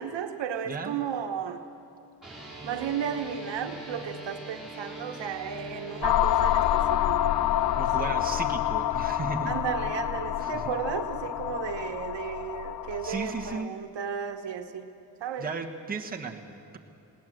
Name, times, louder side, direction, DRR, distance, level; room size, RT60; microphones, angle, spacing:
voice 1, 0.0-1.6 2.6-7.4 8.0-8.2 9.4-14.9 15.2-15.5, right 8 dB, 70° right, 6 dB, 1.3 m, -34 dB
voice 2, 0.7-1.0 7.7-9.6 10.4-10.8 13.0-13.7 15.4-16.8, right 4 dB, 20° right, 1 dB, 1.2 m, -35 dB
sound 1, 2.2-11.7, right 1 dB, ahead, 4.0 m, -43 dB
sound 2, 6.0-13.6, left 13 dB, 55° left, 0.5 m, -27 dB
20.0 x 18.5 x 7.7 m, 2.7 s
wide cardioid pair, 150°, 45 cm